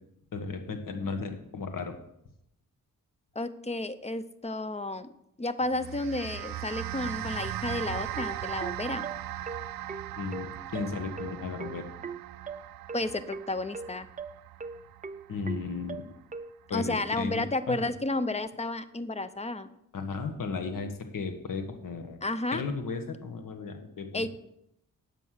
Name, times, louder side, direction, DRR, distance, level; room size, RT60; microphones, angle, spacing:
voice 1, 0.3-2.0 10.2-11.8 15.3-16.0 16.7-17.8 19.9-22.2 22.5-24.3, left 4 dB, 70° left, 6 dB, 1.5 m, -35 dB
voice 2, 3.3-5.1 5.4-9.0 12.9-14.1 16.7-19.7 22.2-22.6 24.1-24.3, left 2 dB, 20° left, 13 dB, 0.7 m, -32 dB
sound 1, 5.6-16.2, right 13 dB, 80° right, 0.5 m, -39 dB
sound 2, 8.2-16.5, right 5 dB, 25° right, 0.5 m, -40 dB
9.0 x 7.6 x 6.5 m, 0.79 s
cardioid pair, 70°, 34 cm